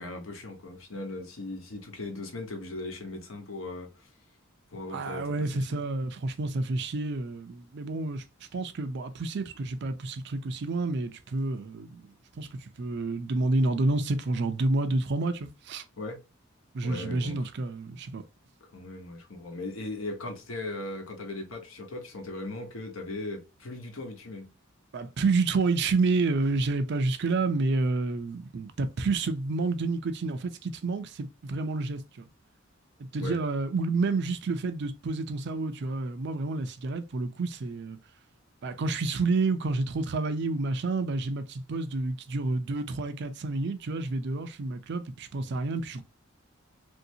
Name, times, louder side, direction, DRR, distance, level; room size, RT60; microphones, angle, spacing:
voice 1, 0.0-4.1 4.7-5.8 16.0-16.2 16.8-17.5 18.7-24.5 33.2-33.4, left 2 dB, 80° left, 1.0 m, -38 dB
voice 2, 4.9-8.2 8.5-15.8 16.7-18.2 24.9-32.3 33.0-38.0 38.6-46.0, right 3 dB, 55° right, 0.4 m, -29 dB
3.1 x 2.7 x 2.7 m
head